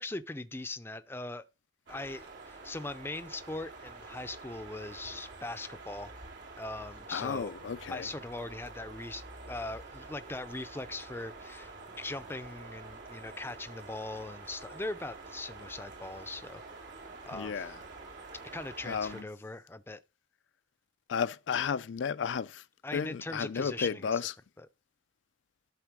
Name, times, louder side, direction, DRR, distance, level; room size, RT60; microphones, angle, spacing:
voice 1, 0.0-1.4 1.9-6.1 6.6-7.5 7.9-16.6 17.3-17.7 18.5-20.0 22.8-24.2, left 2 dB, 10° left, 0.5 m, -40 dB
sound 1, 1.9-19.2, right 3 dB, 80° right, 3.0 m, -48 dB
voice 2, 7.1-8.1 17.3-17.8 18.8-19.2 21.1-22.6 22.9-24.4, left 6 dB, 80° left, 0.4 m, -33 dB
11.5 x 4.1 x 6.1 m
head